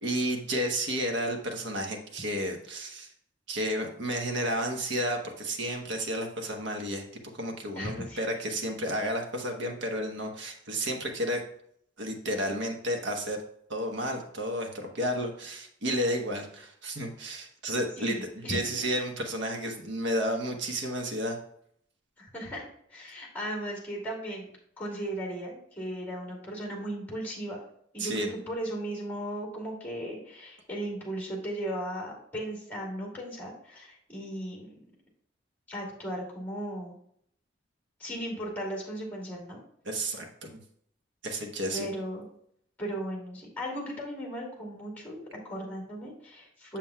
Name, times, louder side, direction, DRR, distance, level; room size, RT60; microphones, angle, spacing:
voice 1, 0.0-3.1 3.5-7.0 7.3-11.4 12.0-13.4 13.7-21.4 28.0-28.3 39.8-40.6 41.2-41.9, equal, 65° right, 3 dB, 1.0 m, -32 dB
voice 2, 7.8-8.2 18.0-18.7 22.2-24.5 24.8-27.6 27.9-34.8 35.7-36.9 38.0-39.6 41.7-42.2 42.8-46.8, right 1 dB, 10° left, -1 dB, 2.3 m, -36 dB
7.2 x 7.0 x 2.3 m, 0.68 s
head